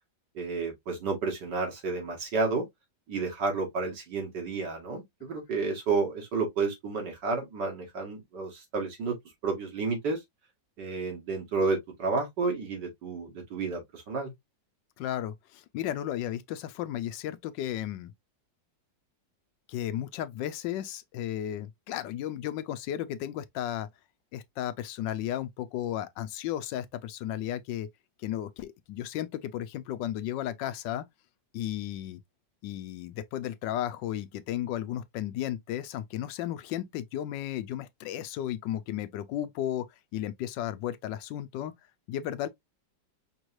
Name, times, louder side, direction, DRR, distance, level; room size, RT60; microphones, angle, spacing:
voice 1, 0.3-2.6 3.1-9.2 9.4-10.2 10.8-14.3, right 4 dB, 75° right, 2.3 m, -31 dB
voice 2, 15.0-18.1 19.7-23.9 24.3-27.9 28.2-31.1 31.5-32.2 32.6-39.9 40.1-41.7 42.1-42.5, left 12 dB, 85° left, 1.3 m, -34 dB
5.3 x 3.1 x 2.5 m
omnidirectional pair, 1.9 m